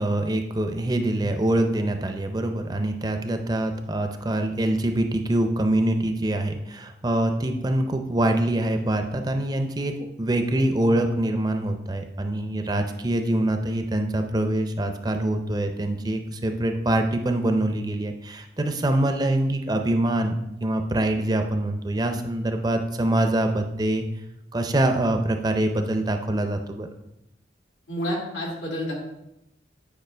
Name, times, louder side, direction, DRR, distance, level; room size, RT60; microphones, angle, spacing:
voice 1, 0.0-20.3 20.6-24.0 24.5-26.9, right 1 dB, 20° right, 6 dB, 0.5 m, -24 dB
voice 2, 27.9-28.9, equal, 90° left, -3 dB, 2.3 m, -29 dB
9.0 x 4.9 x 3.3 m, 0.87 s
head